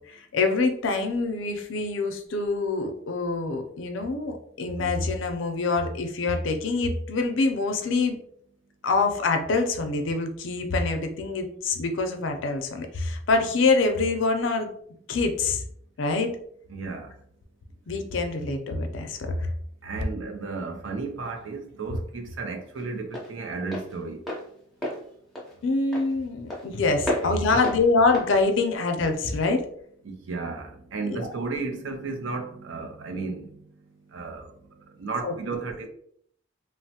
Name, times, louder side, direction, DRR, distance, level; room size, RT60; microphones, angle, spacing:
voice 1, 0.1-8.2 8.8-14.7 15.1-15.6 16.0-16.3 17.9-19.5 25.6-29.6 31.1-31.3 35.2-35.3, left 3 dB, 80° left, 0.5 m, -25 dB
voice 2, 16.7-17.1 19.8-24.2 27.2-27.6 30.0-33.6 34.1-34.4 35.0-35.9, right 3 dB, 80° right, 0.5 m, -33 dB
Walk footsteps, 20.9-29.5, equal, ahead, 0.7 m, -35 dB
3.0 x 2.0 x 2.8 m
head